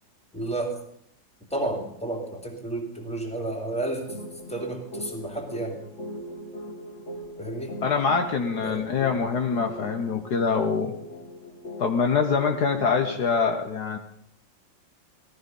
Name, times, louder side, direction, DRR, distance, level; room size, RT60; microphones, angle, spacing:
voice 1, 0.3-0.7 1.5-4.2 4.5-5.8 7.4-7.7 8.6-8.9, right 2 dB, 5° left, 1 dB, 2.6 m, -31 dB
sound 1, 4.1-13.4, equal, 40° left, 2.2 m, -40 dB
voice 2, 7.8-10.9 11.8-14.0, left 5 dB, 60° left, 5 dB, 1.5 m, -24 dB
16.5 x 14.5 x 5.4 m, 0.70 s
omnidirectional pair, 2.0 m